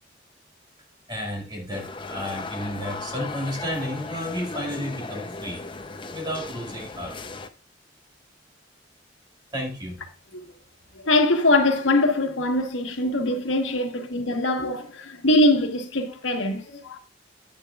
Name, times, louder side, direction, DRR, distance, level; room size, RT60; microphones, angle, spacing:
voice 1, 1.1-5.6 6.1-7.4 9.5-10.0, equal, 25° right, 2.1 m, -32 dB
sound 1, 1.7-7.5, left 3 dB, 25° left, 0.7 m, -36 dB
voice 2, 10.9-17.0, left 1 dB, 90° left, 1.4 m, -22 dB
10.0 x 9.9 x 2.4 m
head